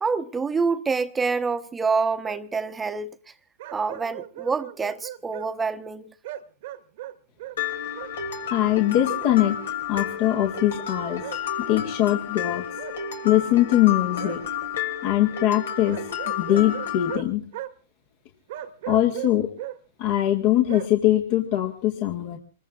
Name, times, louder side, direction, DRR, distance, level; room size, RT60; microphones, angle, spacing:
voice 1, 0.0-3.1 3.7-6.1, right 4 dB, 15° right, 1.1 m, -26 dB
sound 1, 1.9-2.0 2.2-2.4 3.6-5.5 6.2-7.6 7.9-8.1 9.2-9.4 11.2-11.4 12.8-13.0 14.2-14.4 15.8-17.3 17.5-17.7 18.5-19.8 20.7-20.9, right 13 dB, 60° right, 1.4 m, -37 dB
Mallet percussion, 7.6-17.2, left 7 dB, 75° left, 2.8 m, -31 dB
voice 2, 8.5-9.6 9.9-11.2 11.6-12.6 13.2-14.4 15.0-17.5 18.9-19.5 20.0-22.4, left 13 dB, 50° left, 1.8 m, -22 dB
26.0 x 21.0 x 2.5 m
hypercardioid pair, 110°, 0 cm